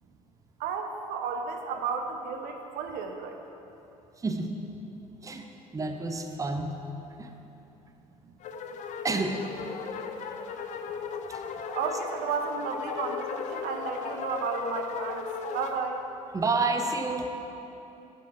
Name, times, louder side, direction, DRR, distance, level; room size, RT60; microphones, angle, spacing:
voice 1, 0.6-3.4 11.7-15.2 15.5-16.1, right 5 dB, 55° right, 4 dB, 0.8 m, -33 dB
voice 2, 4.2-4.5 5.2-5.4 5.7-6.8 7.2-7.3 9.0-9.4 11.3-11.4 16.3-17.3, right 3 dB, 20° right, 5 dB, 0.8 m, -29 dB
sound 1, 8.4-15.8, left 5 dB, 45° left, 0.6 m, -36 dB
10.5 x 7.5 x 4.7 m, 3.0 s
figure-of-eight pair, 55°, 18 cm